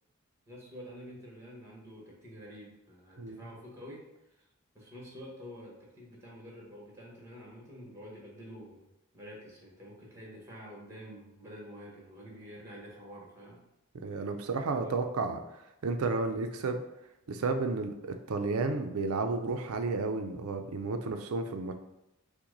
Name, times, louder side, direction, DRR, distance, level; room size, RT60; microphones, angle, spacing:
voice 1, 0.5-4.0 4.3-4.4 4.7-8.9 9.1-13.6 14.8-15.1, equal, 15° right, -3 dB, 1.3 m, -48 dB
voice 2, 14.0-15.4 15.8-16.8 17.3-21.8, right 3 dB, 80° right, 6 dB, 0.5 m, -32 dB
5.8 x 2.2 x 3.9 m, 0.90 s
head